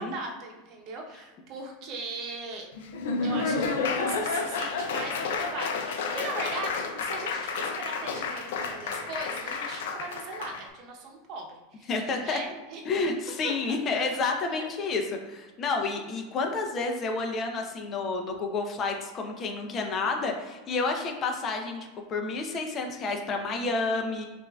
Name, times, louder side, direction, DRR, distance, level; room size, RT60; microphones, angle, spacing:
voice 1, 0.0-2.7 3.2-11.9 12.2-12.8 13.4-14.1 14.5-14.6, right 3 dB, 50° right, 1 dB, 0.9 m, -39 dB
Laughter / Applause, 2.8-10.6, left 4 dB, 75° left, 0.5 m, -30 dB
voice 2, 11.9-12.4 12.9-15.0 15.3-24.3, left 3 dB, 35° left, 3 dB, 0.7 m, -30 dB
6.0 x 2.6 x 2.3 m, 1.2 s
hypercardioid pair, 100°, 0 cm